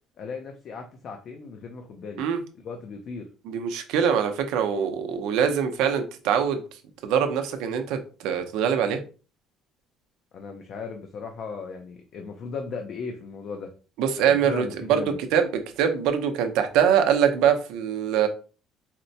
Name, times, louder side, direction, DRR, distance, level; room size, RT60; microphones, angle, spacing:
voice 1, 0.2-2.2 2.6-3.3 10.3-13.7 14.2-15.2, left 5 dB, 45° left, 4 dB, 0.4 m, -37 dB
voice 2, 3.5-6.6 7.0-9.0 14.0-15.0 15.3-15.5 15.8-18.3, right 8 dB, 80° right, 6 dB, 0.5 m, -23 dB
4.2 x 2.1 x 2.6 m, 0.36 s
cardioid pair, 165°, 0 cm